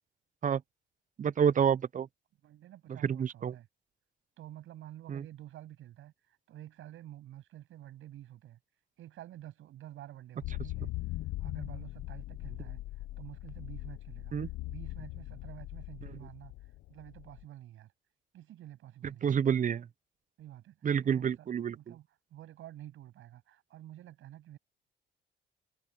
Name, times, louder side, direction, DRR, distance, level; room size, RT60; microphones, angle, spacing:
voice 1, 1.2-2.1 3.0-3.5 5.1-5.2 14.3-14.5 19.2-19.9 20.8-21.8, right 8 dB, 40° right, 0.6 m, -28 dB
voice 2, 2.4-3.7 4.4-8.6 9.0-10.9 11.4-14.4 14.7-16.5 16.9-17.9 18.3-19.4 20.4-21.5 21.7-24.6, right 13 dB, 80° right, 7.7 m, -50 dB
sound 1, 10.4-17.4, left 17 dB, 85° left, 0.7 m, -40 dB
cardioid pair, 90°, 20 cm